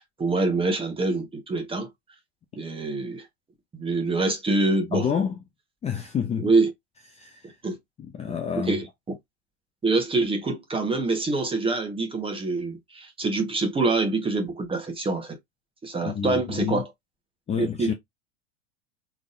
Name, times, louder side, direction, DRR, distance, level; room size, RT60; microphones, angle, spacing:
voice 1, 0.0-1.9 2.5-3.3 3.7-5.1 6.4-6.7 7.6-7.8 8.3-8.9 9.8-15.4 15.8-16.9 17.6-17.9, right 3 dB, 15° right, 1.3 m, -25 dB
voice 2, 4.9-5.3 5.8-6.5 7.1-7.5 8.0-8.8 16.0-16.8 17.5-17.9, left 7 dB, 15° left, 0.6 m, -28 dB
3.9 x 3.5 x 2.6 m
hypercardioid pair, 100°, 37 cm